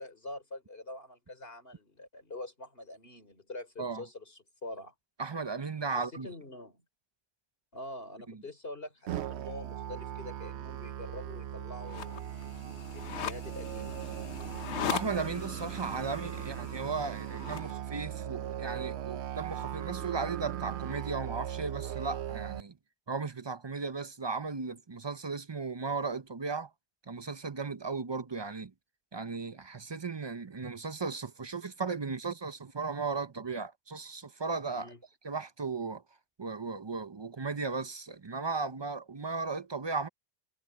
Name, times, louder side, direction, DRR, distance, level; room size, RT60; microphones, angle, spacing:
voice 1, 0.0-4.9 5.9-6.8 7.7-12.3 12.6-14.0 34.7-35.0, left 2 dB, 60° left, 4.8 m, -45 dB
voice 2, 5.2-6.3 8.3-8.4 14.9-22.8 23.1-26.7 27.1-28.7 29.1-34.9 35.2-36.0 36.4-40.1, right 4 dB, 30° right, 0.5 m, -36 dB
Musical instrument, 9.1-22.6, right 10 dB, 80° right, 0.9 m, -39 dB
sound 1, 11.8-17.7, left 8 dB, 85° left, 1.1 m, -40 dB
omnidirectional pair, 1.1 m